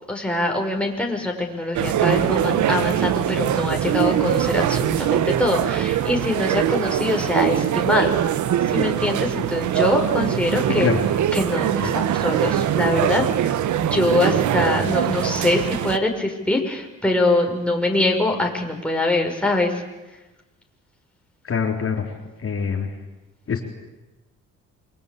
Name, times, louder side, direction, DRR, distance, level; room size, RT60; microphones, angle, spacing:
voice 1, 0.1-8.2 8.7-10.9 11.3-13.6 13.9-19.7, left 2 dB, 5° left, 1 dB, 5.8 m, -23 dB
sound 1, 1.7-16.0, right 10 dB, 75° right, 1.3 m, -22 dB
voice 2, 10.7-11.0 11.8-11.9 21.4-22.1 22.4-22.9 23.5-23.6, left 6 dB, 45° left, 2 dB, 3.8 m, -24 dB
28.0 x 22.5 x 8.7 m, 1.1 s
cardioid pair, 90°, 30 cm